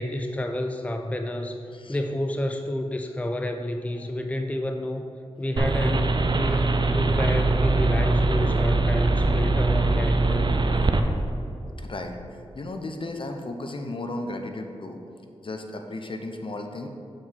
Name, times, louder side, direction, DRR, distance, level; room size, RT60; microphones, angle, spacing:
voice 1, 0.0-1.6 1.9-5.1 5.4-10.5, left 1 dB, 15° left, 5 dB, 0.5 m, -30 dB
sound 1, 5.6-11.0, right 2 dB, 45° right, 0.6 m, -22 dB
voice 2, 11.8-12.2 12.5-15.0 15.4-16.9, left 2 dB, 55° left, 5 dB, 0.8 m, -34 dB
7.7 x 5.0 x 5.4 m, 2.7 s
cardioid pair, 55°, 11 cm